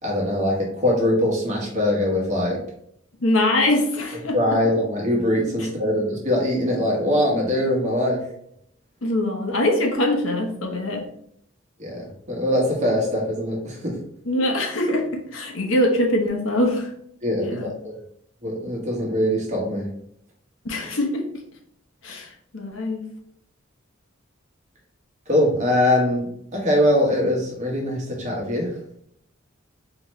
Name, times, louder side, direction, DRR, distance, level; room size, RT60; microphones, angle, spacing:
voice 1, 0.0-2.6 4.3-8.3 11.8-14.0 17.2-17.7 18.4-19.9 25.3-28.8, left 1 dB, 35° right, -3 dB, 1.2 m, -22 dB
voice 2, 3.2-4.4 9.0-11.1 14.3-16.9 17.4-17.7 20.6-21.2 22.0-23.1, left 1 dB, 75° left, 2 dB, 0.9 m, -23 dB
4.2 x 3.0 x 3.1 m, 0.71 s
head